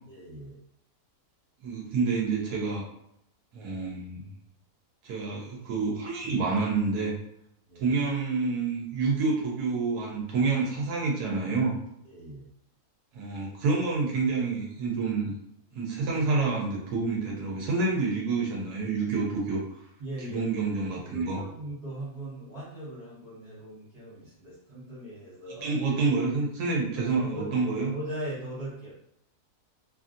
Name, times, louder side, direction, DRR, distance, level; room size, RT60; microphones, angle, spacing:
voice 1, 0.1-0.6 7.7-7.9 12.0-12.4 20.0-20.5 21.0-25.7 26.8-27.6 27.9-28.9, right 1 dB, 40° right, -11 dB, 1.6 m, -40 dB
voice 2, 1.6-2.8 3.5-4.2 5.0-7.1 7.8-11.8 13.1-15.3 15.7-19.6 20.3-21.4 25.6-27.9, right 4 dB, 80° right, -2 dB, 1.3 m, -28 dB
3.2 x 2.5 x 2.5 m, 0.78 s
omnidirectional pair, 1.6 m